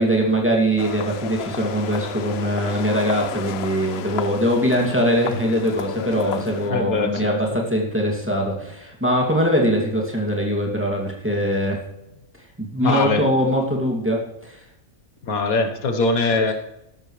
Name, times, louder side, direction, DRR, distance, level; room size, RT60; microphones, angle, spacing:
voice 1, 0.0-11.8 12.6-14.6, equal, 10° right, -2 dB, 2.5 m, -22 dB
sound 1, 0.8-6.7, left 9 dB, 60° left, 0.7 m, -33 dB
sound 2, 1.3-8.7, equal, 40° right, 4.8 m, -42 dB
voice 2, 6.7-7.6 12.8-13.2 15.2-16.5, left 3 dB, 85° left, 6 dB, 1.8 m, -22 dB
13.0 x 13.0 x 3.3 m, 0.87 s
omnidirectional pair, 1.5 m